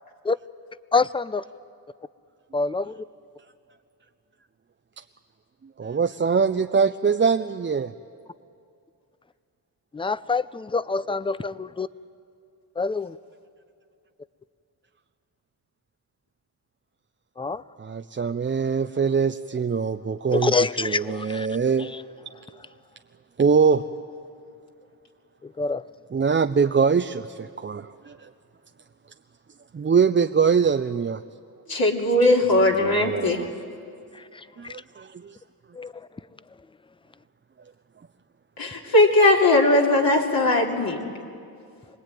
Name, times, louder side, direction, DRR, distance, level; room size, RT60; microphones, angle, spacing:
voice 1, 0.9-1.4 2.5-3.0 9.9-11.9 12.8-13.2 17.4-17.6 20.3-21.5 25.6-25.8 35.8-35.9, left 4 dB, 15° left, 17 dB, 0.5 m, -25 dB
voice 2, 5.8-7.9 17.8-20.5 20.8-21.9 23.4-23.8 26.1-28.3 29.7-31.2 32.8-33.5 34.6-35.4, right 6 dB, 30° right, 7 dB, 0.6 m, -23 dB
voice 3, 31.7-33.4 38.6-41.0, left 2 dB, 60° left, -1 dB, 3.1 m, -19 dB
24.5 x 19.5 x 9.2 m, 2.4 s
cardioid pair, 70°, 41 cm